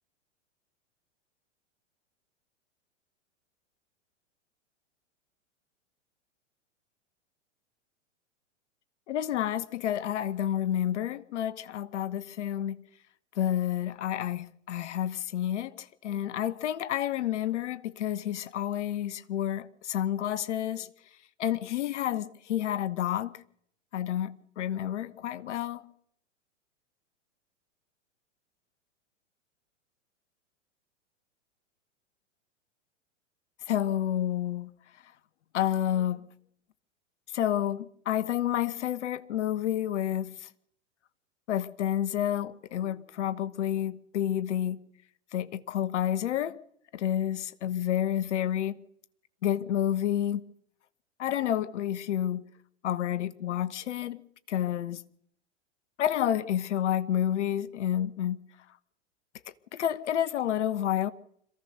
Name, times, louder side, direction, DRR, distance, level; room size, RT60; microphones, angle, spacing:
voice 1, 9.1-12.8 13.4-20.9 21.4-23.4 23.9-25.8 33.7-34.7 35.5-36.2 37.3-40.5 41.5-44.8 45.3-46.6 46.9-48.8 49.4-50.4 51.2-52.4 52.8-54.2 54.5-55.0 56.0-58.4 59.7-61.1, left 11 dB, 70° left, 1.2 m, -29 dB
26.5 x 15.5 x 6.6 m
hypercardioid pair, 105°, 37 cm